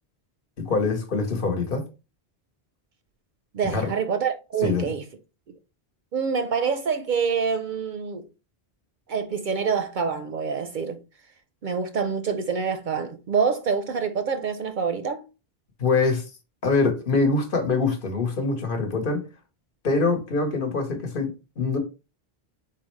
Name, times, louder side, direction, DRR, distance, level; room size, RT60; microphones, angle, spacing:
voice 1, 0.6-1.8 3.7-3.9 4.6-4.9 15.8-16.3 16.6-19.2 19.8-21.8, left 3 dB, 55° left, 1.1 m, -24 dB
voice 2, 3.5-5.0 6.1-8.3 9.1-11.0 11.6-15.2, right 6 dB, 60° right, 0.6 m, -26 dB
4.1 x 3.8 x 3.1 m
omnidirectional pair, 1.1 m